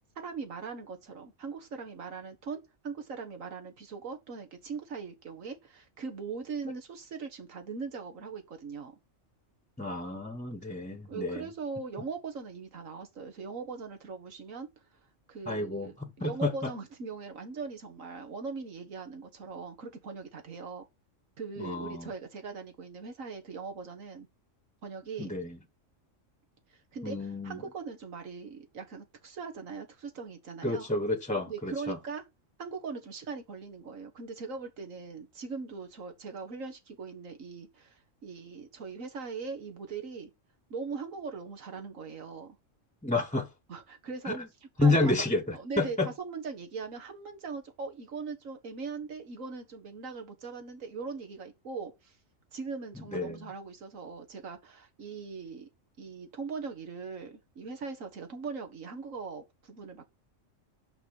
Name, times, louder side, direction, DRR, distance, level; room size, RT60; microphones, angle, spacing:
voice 1, 0.2-8.9 10.7-10.8 11.1-14.7 15.3-20.9 21.4-24.3 24.8-25.3 26.9-27.2 27.4-30.9 31.5-32.2 32.6-40.3 40.7-42.6 43.7-44.4 44.8-45.3 45.5-52.1 52.5-55.7 56.0-60.1, right 5 dB, 85° right, 1.9 m, -40 dB
voice 2, 9.8-11.5 15.5-16.5 21.6-22.1 25.2-25.6 27.0-27.6 30.6-32.0 43.0-43.5 44.2-44.5 44.8-46.1 53.0-53.4, left 2 dB, 5° left, 0.9 m, -30 dB
5.9 x 5.6 x 6.3 m
omnidirectional pair, 1.3 m